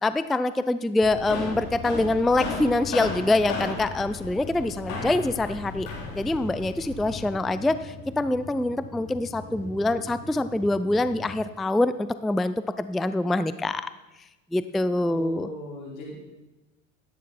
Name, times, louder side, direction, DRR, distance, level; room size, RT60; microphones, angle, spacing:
voice 1, 0.0-5.9 6.1-13.9 14.5-15.5, left 2 dB, ahead, 13 dB, 0.3 m, -25 dB
sound 1, 1.0-7.3, left 4 dB, 55° left, 3.4 m, -35 dB
sound 2, 1.0-11.4, left 2 dB, 15° left, 2.7 m, -42 dB
voice 2, 15.0-16.1, left 2 dB, 80° left, -5 dB, 5.0 m, -38 dB
13.5 x 9.8 x 4.3 m, 1.1 s
hypercardioid pair, 75°, 40 cm